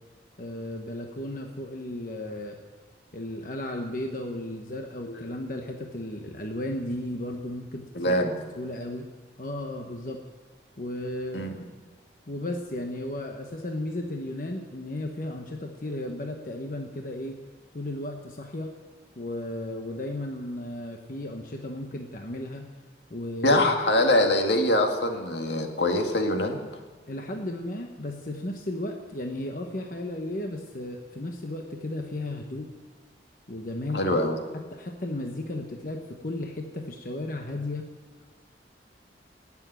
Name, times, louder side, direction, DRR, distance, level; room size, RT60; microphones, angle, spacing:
voice 1, 0.4-2.6 3.1-8.2 8.5-9.1 9.4-10.2 10.8-11.5 12.3-17.4 17.7-18.7 19.2-22.7 23.1-23.6 27.1-32.7 33.5-34.1 34.5-37.9, left 1 dB, 50° left, 2 dB, 1.1 m, -34 dB
voice 2, 7.9-8.4 11.3-11.5 23.4-26.6 33.9-34.4, left 1 dB, 80° left, 3 dB, 2.0 m, -23 dB
18.5 x 7.3 x 9.1 m, 1.3 s
head